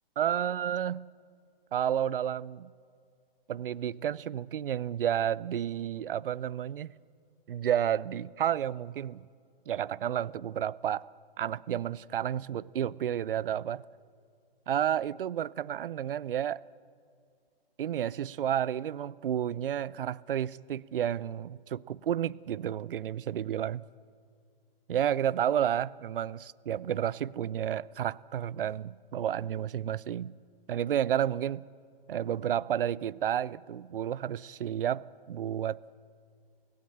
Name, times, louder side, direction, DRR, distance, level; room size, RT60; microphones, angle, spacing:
voice 1, 0.2-1.0 1.7-2.7 3.5-6.9 7.5-9.2 9.7-11.1 11.4-13.8 14.7-16.6 17.8-23.8 24.9-30.3 30.7-31.6 32.1-35.8, right 10 dB, 65° right, 0.6 m, -31 dB
26.0 x 16.5 x 7.9 m
figure-of-eight pair, 130°, 30 cm